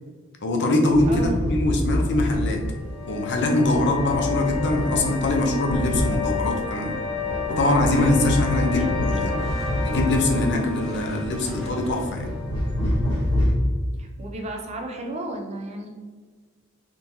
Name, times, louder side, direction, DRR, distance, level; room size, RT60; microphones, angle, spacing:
voice 1, 0.4-2.6 3.1-6.9 7.5-9.3 9.8-12.3, left 2 dB, 55° left, 2 dB, 0.5 m, -23 dB
sound 1, 0.9-13.5, left 1 dB, 20° left, 1.4 m, -27 dB
voice 2, 1.1-1.4 8.8-8.9 9.1-9.8 14.0-15.9, right 1 dB, 30° right, 2 dB, 0.4 m, -34 dB
sound 2, 2.5-13.5, left 4 dB, 90° left, 1.1 m, -32 dB
Motorcycle / Engine starting, 5.9-13.1, equal, 5° left, 1.2 m, -39 dB
3.6 x 2.8 x 2.7 m, 1.5 s
head